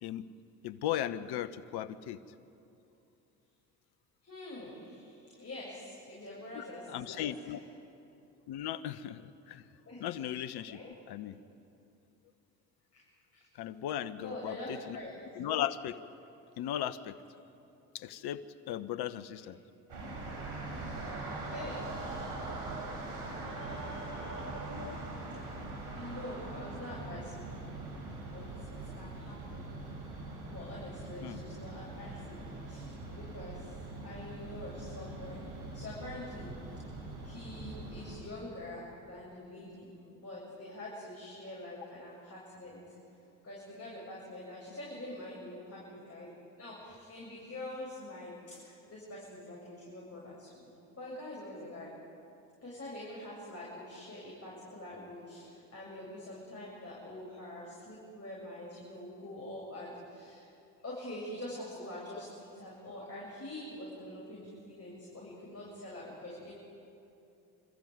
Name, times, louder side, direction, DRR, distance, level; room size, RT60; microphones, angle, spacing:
voice 1, 0.6-2.2 6.5-7.6 8.5-9.6 10.0-11.4 13.5-15.0 15.3-16.0 16.6-17.2 17.9-19.6 24.7-24.9 25.3-25.4 31.2-31.4, left 11 dB, 60° left, 13 dB, 1.2 m, -37 dB
voice 2, 4.2-7.6 9.8-10.1 10.7-10.9 12.9-13.0 13.3-13.5 14.2-15.4 20.9-21.9 22.3-22.4 23.4-25.5 25.9-27.7 28.2-29.6 30.4-36.5 37.2-43.0 43.4-51.9 52.6-60.5 60.8-66.5, left 1 dB, 30° left, -5 dB, 7.7 m, -45 dB
sound 1, 19.9-38.2, right 2 dB, 65° right, 6.0 m, -42 dB
27.0 x 14.0 x 9.5 m, 2.7 s
hypercardioid pair, 60°, 44 cm